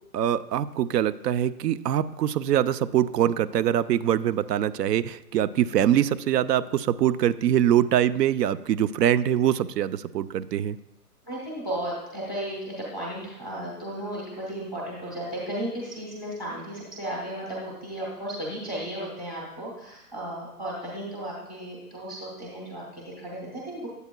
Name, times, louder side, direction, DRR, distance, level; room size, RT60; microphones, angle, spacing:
voice 1, 0.1-10.8, right 10 dB, 85° right, 13 dB, 0.6 m, -23 dB
voice 2, 11.3-23.9, right 1 dB, ahead, -6 dB, 0.7 m, -34 dB
12.0 x 8.1 x 2.2 m, 0.89 s
hypercardioid pair, 170°, 47 cm